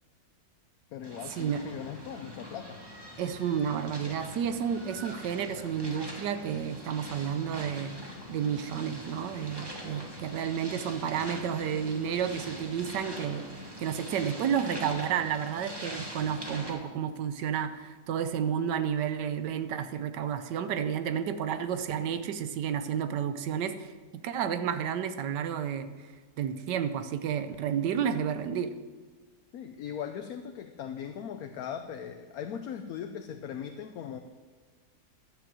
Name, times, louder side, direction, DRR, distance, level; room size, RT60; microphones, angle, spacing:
voice 1, 0.9-2.8 29.5-34.2, left 8 dB, 70° left, 6 dB, 1.1 m, -39 dB
sound 1, 1.0-16.7, equal, 15° right, 1.8 m, -43 dB
voice 2, 3.2-7.9 8.3-13.4 13.8-23.9 24.2-25.9 26.4-28.7, right 8 dB, 90° right, 10 dB, 1.4 m, -31 dB
12.0 x 7.0 x 7.5 m, 1.5 s
omnidirectional pair, 1.8 m